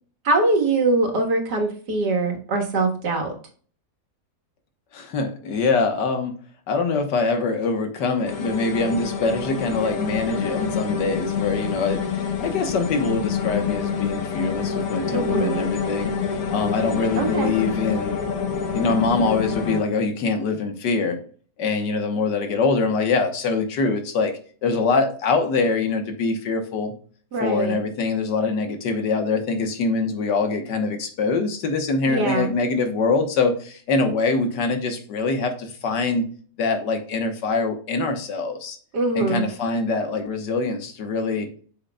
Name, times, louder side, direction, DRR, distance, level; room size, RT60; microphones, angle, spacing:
voice 1, 0.2-3.3 15.1-15.6 17.2-17.5 27.3-27.8 32.1-32.5 38.9-39.5, right 3 dB, 70° right, 2 dB, 2.1 m, -22 dB
voice 2, 4.9-6.4 6.7-12.1 12.4-16.1 16.5-18.2 18.7-21.2 21.6-24.3 24.6-26.9 27.4-36.3 36.6-38.8 39.2-41.5, left 4 dB, 80° left, 6 dB, 1.8 m, -24 dB
sound 1, 8.3-19.8, left 6 dB, 60° left, 1.3 m, -27 dB
8.2 x 6.4 x 2.3 m, 0.44 s
omnidirectional pair, 1.8 m